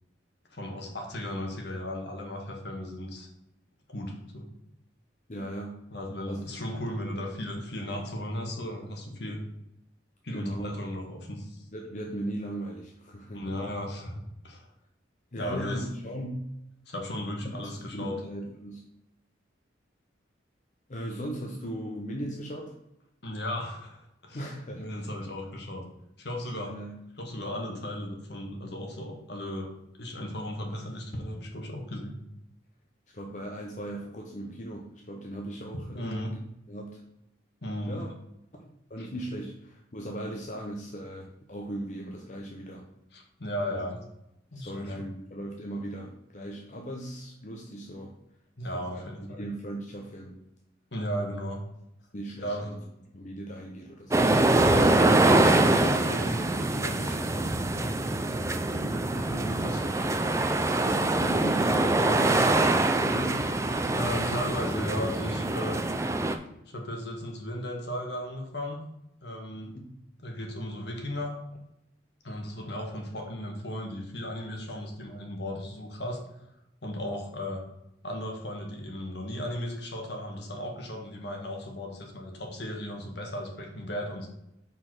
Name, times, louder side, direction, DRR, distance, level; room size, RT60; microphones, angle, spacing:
voice 1, 0.5-3.3 3.9-4.4 5.9-9.4 10.2-11.6 13.3-14.1 14.4-14.7 15.4-15.9 16.9-18.2 23.2-25.8 26.2-26.7 27.2-29.7 30.0-32.2 35.9-36.3 37.6-38.0 39.0-39.1 43.1-44.0 44.5-44.9 48.6-49.4 50.9-51.6 52.4-52.7 54.6-57.9 59.1-59.8 63.9-65.8 66.7-68.8 69.2-69.7 70.2-71.3 72.2-76.2 76.8-77.6 78.0-84.3, left 1 dB, 60° left, 1 dB, 1.5 m, -35 dB
voice 2, 5.3-5.8 6.3-6.4 10.3-10.7 11.7-13.6 15.3-16.5 17.4-18.8 20.9-22.7 24.3-25.1 26.6-27.0 33.1-36.4 36.7-37.0 37.9-38.1 38.6-42.9 43.7-43.9 44.5-48.1 48.6-49.0 49.4-50.4 52.1-52.8 53.1-54.3 58.7-59.2 60.7-63.5 69.5-70.0, right 1 dB, 40° left, 0 dB, 0.8 m, -38 dB
sound 1, 54.1-66.4, right 2 dB, 15° right, 0.4 m, -24 dB
5.5 x 4.4 x 6.1 m, 0.83 s
head